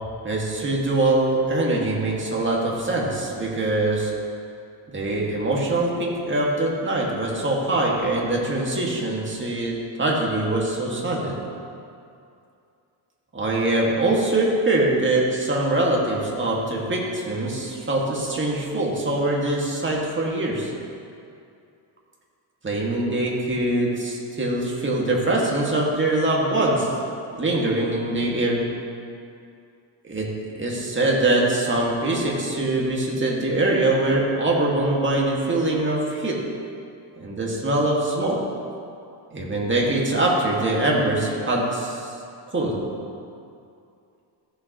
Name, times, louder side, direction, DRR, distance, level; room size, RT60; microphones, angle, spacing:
voice 1, 0.2-4.1 4.9-11.4 13.3-20.7 22.6-26.9 27.4-28.7 30.0-30.3 30.6-36.4 37.2-38.4 39.3-42.1 42.5-42.8, right 2 dB, 25° right, -3 dB, 2.1 m, -23 dB
15.0 x 7.0 x 3.1 m, 2.5 s
cardioid pair, 95°, 48 cm